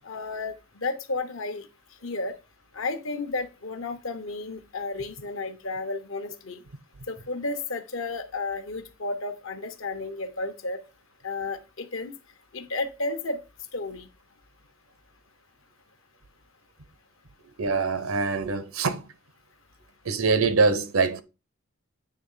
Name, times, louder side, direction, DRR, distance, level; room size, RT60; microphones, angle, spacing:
voice 1, 0.0-1.7 2.0-2.4 2.7-6.6 7.1-10.8 11.2-12.1 12.5-13.4 13.7-14.1, left 3 dB, 75° left, 1.1 m, -32 dB
voice 2, 17.6-19.1 20.0-21.2, right 4 dB, 85° right, 0.9 m, -24 dB
8.6 x 3.4 x 5.6 m
head